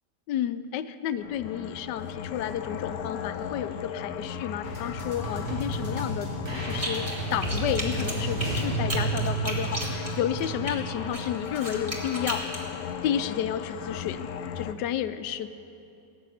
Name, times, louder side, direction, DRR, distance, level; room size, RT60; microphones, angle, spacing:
voice 1, 0.3-6.3 6.6-12.6 13.0-14.3 14.6-15.5, left 10 dB, 90° left, 12 dB, 1.3 m, -31 dB
sound 1, 1.2-14.7, left 7 dB, 70° left, 1.0 m, -37 dB
sound 2, 4.6-11.2, right 3 dB, 55° right, 3.5 m, -32 dB
sound 3, 6.7-7.2 7.4-10.7 11.1-12.6, right 1 dB, 20° right, 1.7 m, -34 dB
16.5 x 7.5 x 9.2 m, 2.7 s
omnidirectional pair, 1.8 m